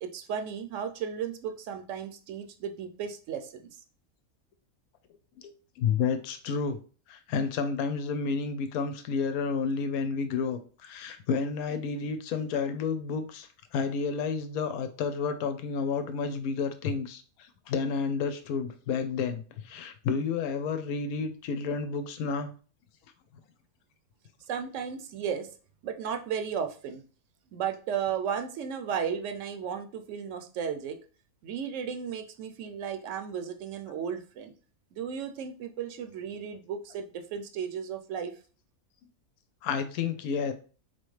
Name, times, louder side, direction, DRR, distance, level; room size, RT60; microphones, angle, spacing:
voice 1, 0.0-3.6 24.5-25.5 25.8-27.0 27.5-31.0 31.4-34.5 34.9-38.3, right 7 dB, 65° right, 7 dB, 0.9 m, -34 dB
voice 2, 5.8-6.8 7.1-17.2 17.7-22.5 39.6-40.5, left 5 dB, 85° left, 10 dB, 1.1 m, -30 dB
4.3 x 2.9 x 3.2 m, 0.38 s
omnidirectional pair, 1.5 m